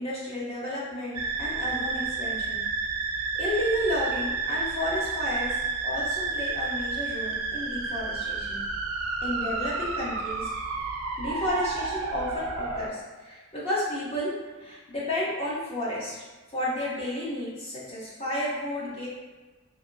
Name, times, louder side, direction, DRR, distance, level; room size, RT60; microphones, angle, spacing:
voice 1, 0.0-2.7 3.4-8.6 9.2-10.5 11.2-14.3 14.6-16.2 16.5-19.1, left 1 dB, 25° left, -7 dB, 0.7 m, -32 dB
sound 1, 1.1-12.9, right 4 dB, 80° right, 0.3 m, -31 dB
2.7 x 2.7 x 2.5 m, 1.3 s
head